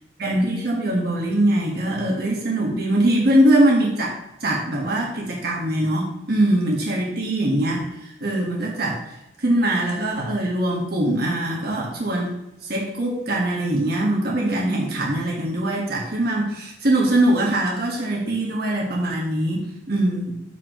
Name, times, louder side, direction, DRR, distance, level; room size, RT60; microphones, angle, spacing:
voice 1, 0.2-4.1 4.4-7.9 8.2-9.0 9.4-12.3 12.7-20.3, right 1 dB, 55° right, -3 dB, 1.7 m, -22 dB
13.0 x 4.6 x 3.1 m, 0.87 s
head